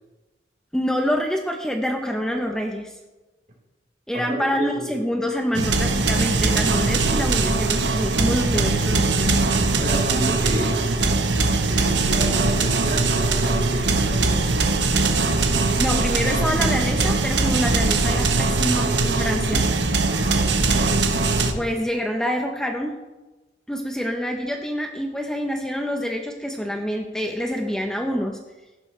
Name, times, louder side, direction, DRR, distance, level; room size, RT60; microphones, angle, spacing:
voice 1, 0.7-3.0 4.1-9.3 15.8-19.6 21.5-22.9 23.7-28.4, equal, 5° left, 2 dB, 0.9 m, -26 dB
voice 2, 4.1-4.9 9.8-10.8 11.7-14.4 20.0-20.5, right 1 dB, 50° right, -4 dB, 4.3 m, -30 dB
sound 1, 5.5-21.5, right 3 dB, 90° right, 1.2 m, -21 dB
15.0 x 11.5 x 3.3 m, 1.1 s
head